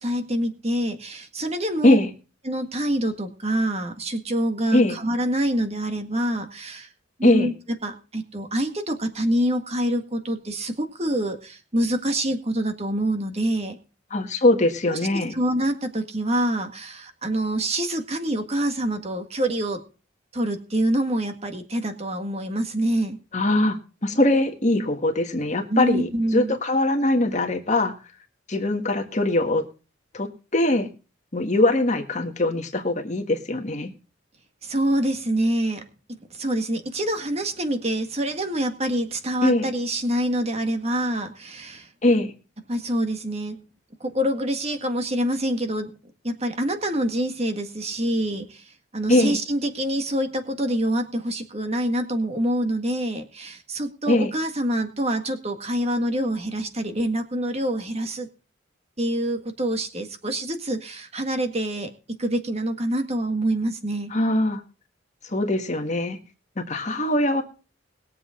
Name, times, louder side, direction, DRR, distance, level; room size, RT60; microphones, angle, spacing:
voice 1, 0.0-2.0 2.4-6.9 7.2-7.5 7.8-13.8 14.9-15.0 15.3-19.8 20.3-23.2 25.7-26.6 34.6-35.8 36.3-41.9 42.7-43.6 44.0-45.9 46.2-48.7 48.9-58.3 59.0-64.1, right 1 dB, 30° right, 6 dB, 1.8 m, -26 dB
voice 2, 14.1-15.3 23.3-23.8 24.0-27.9 28.5-29.6 30.1-30.9 31.3-33.9 39.4-39.7 42.0-42.3 49.1-49.4 54.1-54.3 64.1-64.6 65.2-66.2 66.6-67.4, left 1 dB, 35° left, 4 dB, 1.7 m, -21 dB
21.0 x 7.7 x 3.8 m, 0.34 s
head